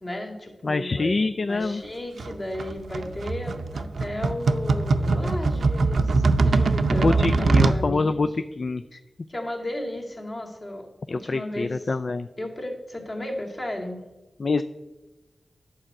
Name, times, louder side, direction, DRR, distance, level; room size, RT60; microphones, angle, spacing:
voice 1, 0.0-1.2 1.5-8.3 9.3-11.9 12.4-14.0, left 1 dB, 35° left, 0 dB, 2.3 m, -34 dB
voice 2, 0.6-1.8 6.9-8.3 8.6-9.0 11.1-12.3 14.4-14.6, left 3 dB, 50° left, 10 dB, 0.4 m, -25 dB
sound 1, 2.2-7.8, right 3 dB, 80° right, 0.6 m, -22 dB
11.5 x 4.8 x 7.6 m, 1.1 s
wide cardioid pair, 80°, 0 cm